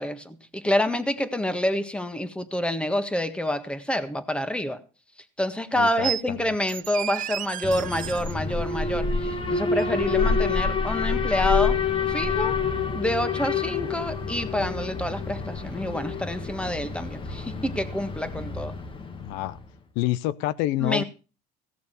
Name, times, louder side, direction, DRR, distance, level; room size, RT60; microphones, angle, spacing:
voice 1, 0.0-4.8 5.4-11.8 12.1-12.6 12.9-18.8 20.8-21.0, left 1 dB, 5° left, 1.6 m, -27 dB
voice 2, 5.8-6.4 19.2-19.6 20.0-21.0, left 15 dB, 75° left, 0.6 m, -27 dB
sound 1, 6.0-6.2 6.7-8.3 9.8-9.9, right 13 dB, 45° right, 0.5 m, -32 dB
Alarm, 7.6-19.6, left 5 dB, 25° left, 1.7 m, -28 dB
16.5 x 6.7 x 6.8 m
supercardioid pair, 100°, 19 cm